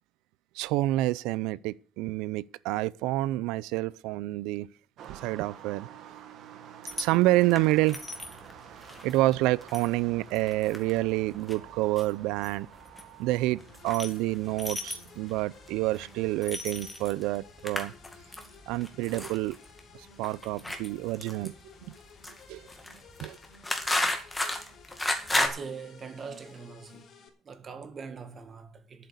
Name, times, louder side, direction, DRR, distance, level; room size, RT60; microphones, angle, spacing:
voice 1, 0.5-4.7 5.1-8.0 9.0-17.9 18.7-19.6 19.9-21.5 21.9-22.0 22.5-22.7 23.2-23.4, right 18 dB, 85° right, 0.5 m, -28 dB
sound 1, 5.0-16.4, right 8 dB, 50° right, 1.9 m, -51 dB
sound 2, 6.9-25.5, left 1 dB, 5° left, 2.1 m, -35 dB
sound 3, 13.6-27.3, left 5 dB, 40° left, 3.1 m, -55 dB
voice 2, 25.3-27.1 27.5-29.1, right 5 dB, 25° right, 1.8 m, -42 dB
11.0 x 8.5 x 8.1 m
cardioid pair, 165°, 0 cm